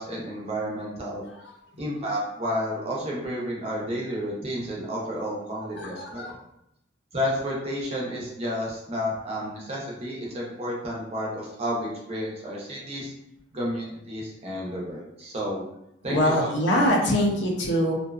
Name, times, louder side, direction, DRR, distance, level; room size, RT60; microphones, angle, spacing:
voice 1, 0.0-1.2 1.8-6.3 7.1-13.1 13.5-15.6 16.0-16.8, equal, 30° right, -4 dB, 0.6 m, -31 dB
voice 2, 5.8-6.4 16.1-17.9, equal, 65° left, 0 dB, 0.5 m, -24 dB
2.6 x 2.2 x 2.3 m, 0.81 s
head